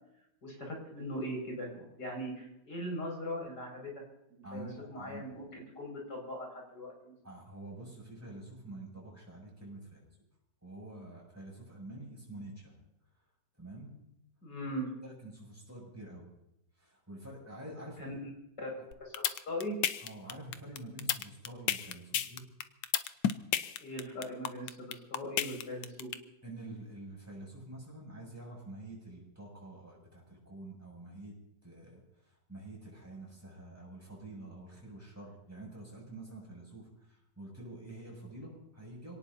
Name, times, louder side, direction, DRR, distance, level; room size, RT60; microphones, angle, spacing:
voice 1, 0.4-3.9 4.3-7.2 14.4-14.9 18.0-18.1 18.6-18.7 19.0-19.8 23.8-26.1, equal, 65° left, -1 dB, 6.6 m, -40 dB
voice 2, 4.4-5.2 7.2-10.1 10.6-12.7 13.6-13.9 15.0-16.3 16.8-18.1 18.8-18.9 20.0-22.4 26.4-31.3 31.6-39.2, right 2 dB, 10° right, -3 dB, 7.5 m, -47 dB
sound 1, 18.9-26.1, left 10 dB, 85° left, 1.5 m, -31 dB
26.5 x 18.0 x 2.8 m, 0.82 s
omnidirectional pair, 2.0 m